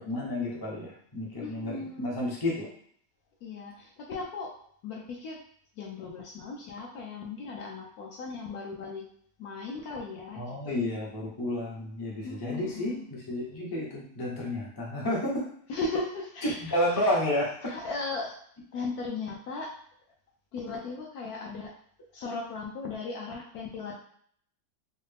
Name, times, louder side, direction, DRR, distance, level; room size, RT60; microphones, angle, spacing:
voice 1, 0.0-2.7 10.4-15.5 16.6-17.7, left 1 dB, 30° left, -5 dB, 0.4 m, -31 dB
voice 2, 1.4-2.2 3.4-4.5 4.8-5.4 5.8-9.1 9.4-10.7 12.2-13.1 15.7-16.7 17.0-17.1 17.6-18.4 18.7-19.7 20.5-21.7 22.1-23.9, left 3 dB, 65° left, -1 dB, 1.0 m, -37 dB
3.9 x 2.1 x 3.3 m, 0.62 s
omnidirectional pair, 2.0 m